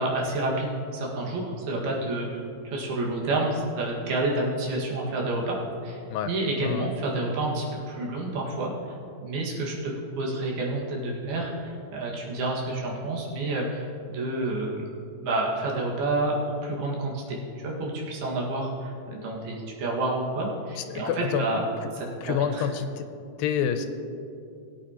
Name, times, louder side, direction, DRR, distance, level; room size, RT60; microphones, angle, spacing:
voice 1, 0.0-5.6 5.8-6.0 6.3-8.7 9.2-14.9 15.2-21.6 21.9-22.7, right 2 dB, 85° right, -3 dB, 3.8 m, -29 dB
voice 2, 20.8-21.5 22.2-23.1 23.4-23.9, left 8 dB, 80° left, 8 dB, 2.3 m, -28 dB
20.5 x 8.8 x 2.9 m, 2.6 s
omnidirectional pair, 4.2 m